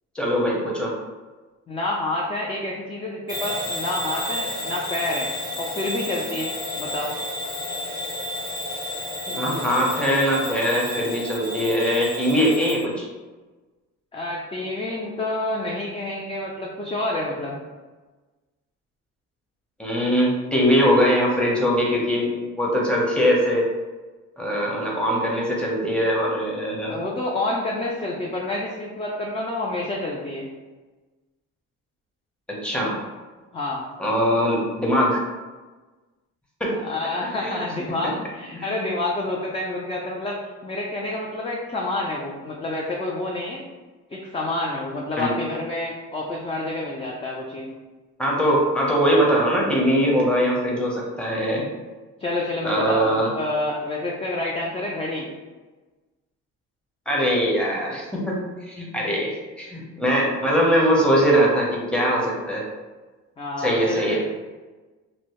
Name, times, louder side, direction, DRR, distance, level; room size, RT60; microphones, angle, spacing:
voice 1, 0.1-0.9 9.3-13.1 19.8-23.7 24.4-27.0 32.6-32.9 34.0-35.2 36.6-36.7 37.4-37.6 38.5-38.7 45.2-45.3 48.2-51.6 52.6-53.3 57.1-58.4 58.7-62.6 63.6-64.2, equal, 5° left, -3 dB, 0.7 m, -21 dB
voice 2, 1.7-5.3 5.6-7.1 14.1-17.6 26.9-30.5 33.5-33.8 36.7-43.6 44.1-47.7 52.2-55.3 63.4-64.2, left 2 dB, 20° left, -2 dB, 0.4 m, -28 dB
Bell / Alarm, 3.3-12.8, left 1 dB, 80° left, 1.3 m, -31 dB
2.6 x 2.0 x 2.9 m, 1.3 s
cardioid pair, 90°, 30 cm